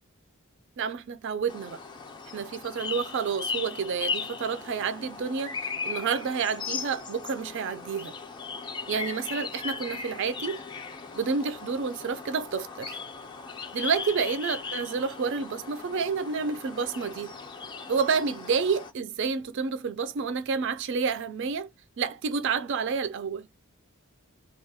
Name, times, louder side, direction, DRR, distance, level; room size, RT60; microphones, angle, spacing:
voice 1, 0.8-1.8 2.3-5.6 5.8-8.1 8.9-10.6 11.1-13.0 13.7-17.3 17.9-21.7 22.0-23.5, right 5 dB, 55° right, 0.4 m, -29 dB
sound 1, 1.5-18.9, left 5 dB, 20° left, 0.3 m, -38 dB
2.3 x 2.0 x 2.7 m
head